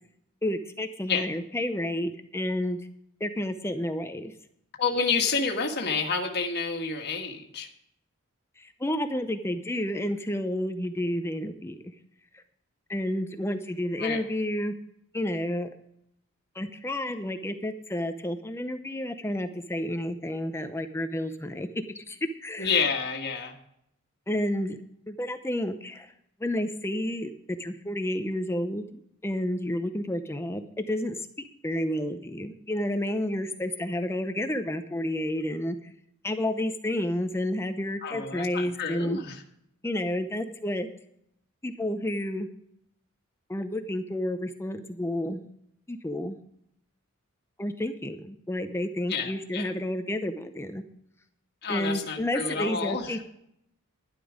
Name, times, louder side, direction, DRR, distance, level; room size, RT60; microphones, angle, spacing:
voice 1, 0.4-2.8 3.2-4.3 8.6-11.8 12.3-12.4 12.9-14.7 15.1-15.7 16.5-21.7 21.9-22.8 24.3-24.8 25.1-26.1 26.4-35.9 36.2-39.2 39.8-40.9 41.6-42.5 43.5-45.4 45.9-46.4 47.6-50.8 51.7-53.2, left 1 dB, 10° left, 8 dB, 0.7 m, -30 dB
voice 2, 4.8-7.7 14.0-14.2 22.6-23.5 38.0-39.4 49.1-49.7 51.6-53.1, left 5 dB, 50° left, 2 dB, 1.6 m, -29 dB
11.5 x 11.5 x 5.0 m, 0.74 s
head